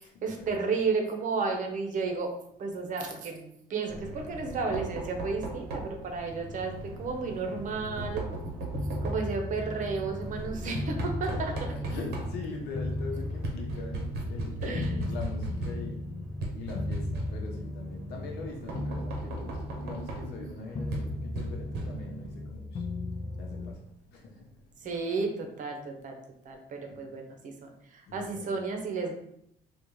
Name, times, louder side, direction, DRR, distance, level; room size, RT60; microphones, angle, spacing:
voice 1, 0.2-2.3 2.6-8.2 9.0-11.5 14.6-15.1 24.8-26.1 26.4-29.2, right 4 dB, 50° right, 3 dB, 0.8 m, -32 dB
Knock, 3.9-22.3, right 2 dB, 80° right, 0.9 m, -38 dB
sound 1, 8.7-12.5 12.7-18.5 18.7-20.5 20.7-23.7, left 1 dB, 30° left, 0.4 m, -36 dB
voice 2, 11.3-16.0 16.6-22.6 23.4-23.8 24.2-24.3 26.9-27.0 28.1-28.4, left 3 dB, 80° left, 1 dB, 0.8 m, -42 dB
3.6 x 2.4 x 3.1 m, 0.73 s
cardioid pair, 110°, 17 cm